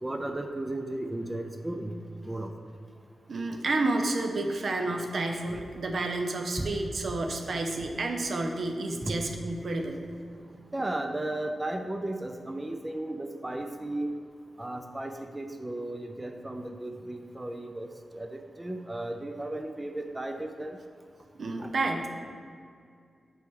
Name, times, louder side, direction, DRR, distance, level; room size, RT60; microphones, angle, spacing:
voice 1, 0.0-2.0 2.2-2.5 5.5-5.6 6.6-6.7 9.0-9.2 10.7-14.1 14.6-17.9 18.1-20.8 21.6-21.7, right 1 dB, 20° right, 5 dB, 0.4 m, -35 dB
voice 2, 3.3-10.0 21.4-22.1, right 2 dB, 65° right, 3 dB, 0.7 m, -30 dB
8.0 x 4.5 x 3.7 m, 2.3 s
cardioid pair, 70°, 0 cm